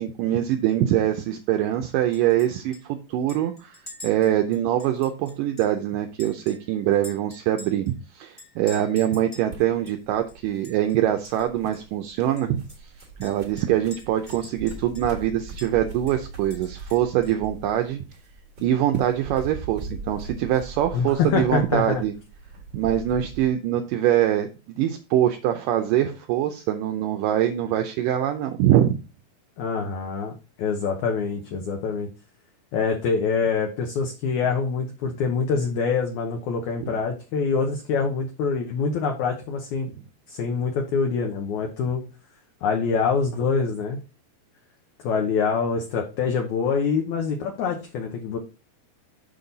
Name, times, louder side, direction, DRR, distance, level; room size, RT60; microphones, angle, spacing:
voice 1, 0.0-12.9 13.2-18.0 18.6-22.1 22.7-24.5 24.8-29.0 36.8-37.0, right 11 dB, 80° right, 6 dB, 2.0 m, -24 dB
Chink clink, 2.1-2.5 2.7-2.8 3.3-5.8 6.2-7.9 8.4-9.5 9.9-10.0 10.3-10.9 11.2-11.4 11.7-11.8 12.4-15.2 15.6-15.7 16.1-17.5, left 1 dB, 25° left, 1.6 m, -46 dB
sound 1, 9.5-23.5, right 4 dB, 45° right, 1.8 m, -41 dB
voice 2, 20.9-22.0 29.6-30.3 30.6-32.1 32.7-39.9 40.3-42.0 42.6-44.0 45.0-48.4, left 5 dB, 70° left, 3 dB, 1.9 m, -25 dB
6.6 x 5.5 x 3.9 m, 0.31 s
omnidirectional pair, 4.3 m